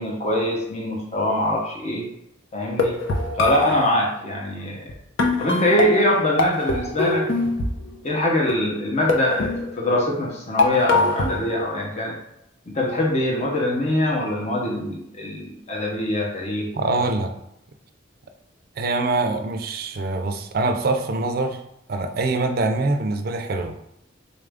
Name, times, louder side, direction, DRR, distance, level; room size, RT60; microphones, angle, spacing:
voice 1, 0.0-2.1 2.5-3.0 3.4-4.9 5.4-7.3 8.0-12.2 12.7-16.7 17.0-17.1, left 1 dB, 35° left, -2 dB, 0.7 m, -23 dB
sound 1, 2.6-3.9 4.9-5.0 5.2-7.9 8.5-8.8 9.1-10.1 10.6-11.7, left 2 dB, 80° left, 0.6 m, -23 dB
voice 2, 16.8-17.3 18.8-21.6 21.9-23.8, right 3 dB, 50° right, 7 dB, 0.4 m, -24 dB
4.0 x 2.5 x 3.4 m, 0.80 s
head